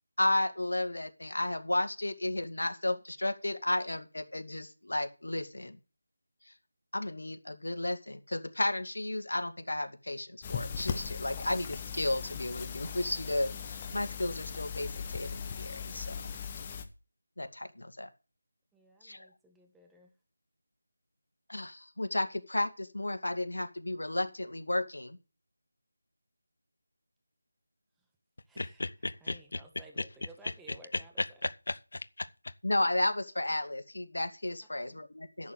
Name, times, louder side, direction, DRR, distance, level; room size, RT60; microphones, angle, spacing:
voice 1, 0.2-5.8 6.9-16.3 17.4-18.1 19.0-19.3 21.5-25.2 32.6-35.5, left 1 dB, 85° left, 2.3 m, -33 dB
sound 1, 10.4-16.9, left 7 dB, 20° left, 1.1 m, -39 dB
voice 2, 18.7-20.1 28.5-28.8 29.2-31.1 34.7-35.0, right 2 dB, 5° right, 1.4 m, -56 dB
voice 3, 28.6-29.6 30.0-30.1 30.4-30.5 30.9-32.5, left 2 dB, 65° left, 0.8 m, -36 dB
11.0 x 7.2 x 8.2 m
figure-of-eight pair, 170°, 0 cm